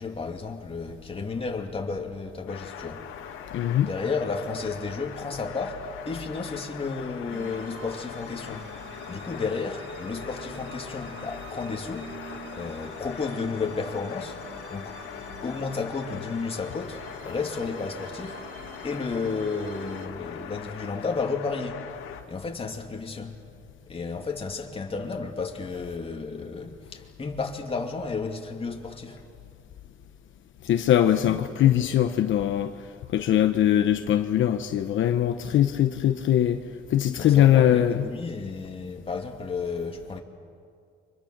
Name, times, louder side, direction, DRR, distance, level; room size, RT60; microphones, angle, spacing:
voice 1, 0.0-3.0 3.8-8.7 9.1-12.1 12.5-15.0 15.4-18.5 18.8-21.8 22.3-23.4 23.9-29.2 31.2-32.1 37.2-40.2, left 4 dB, 30° left, 2.8 m, -32 dB
sound 1, 2.5-22.2, left 8 dB, 85° left, 2.1 m, -41 dB
voice 2, 3.5-3.9 30.6-32.7 33.1-36.6 36.9-38.0, left 11 dB, 70° left, 1.0 m, -21 dB
sound 2, 7.3-20.1, right 7 dB, 70° right, 2.0 m, -46 dB
29.5 x 26.0 x 6.7 m
cardioid pair, 110°, 20 cm